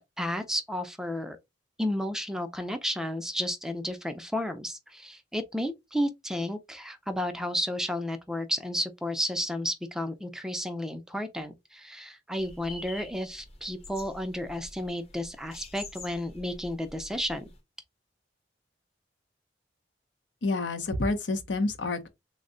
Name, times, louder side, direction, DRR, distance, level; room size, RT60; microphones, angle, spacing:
voice 1, 0.0-1.4 1.8-17.5, equal, 5° right, 0.4 m, -32 dB
sound 1, 12.4-17.6, left 2 dB, 35° left, 0.7 m, -47 dB
voice 2, 20.4-22.1, left 2 dB, 80° left, 0.7 m, -28 dB
3.5 x 2.1 x 3.7 m
head